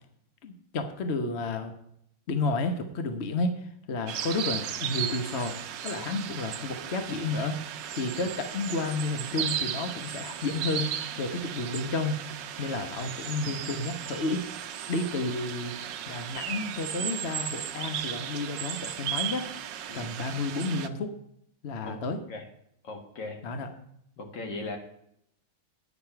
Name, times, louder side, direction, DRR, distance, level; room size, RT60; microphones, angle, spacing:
voice 1, 0.4-1.7 2.3-5.6 5.8-7.6 7.9-12.3 12.6-14.5 14.9-15.7 16.1-19.5 19.9-21.1 21.6-22.2 23.4-23.7, left 3 dB, 45° left, 7 dB, 1.0 m, -31 dB
sound 1, 4.1-20.9, right 10 dB, 70° right, 1.3 m, -36 dB
voice 2, 22.8-23.4 24.2-24.8, left 2 dB, 65° left, 3 dB, 2.3 m, -38 dB
9.8 x 6.1 x 5.7 m, 0.74 s
omnidirectional pair, 2.2 m